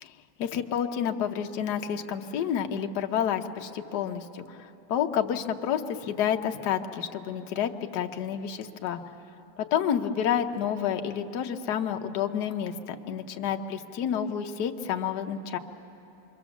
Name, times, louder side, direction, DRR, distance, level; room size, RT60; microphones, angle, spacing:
voice 1, 0.4-9.0 9.6-15.6, left 9 dB, 60° left, 5 dB, 1.3 m, -29 dB
27.0 x 23.5 x 7.2 m, 2.9 s
omnidirectional pair, 2.2 m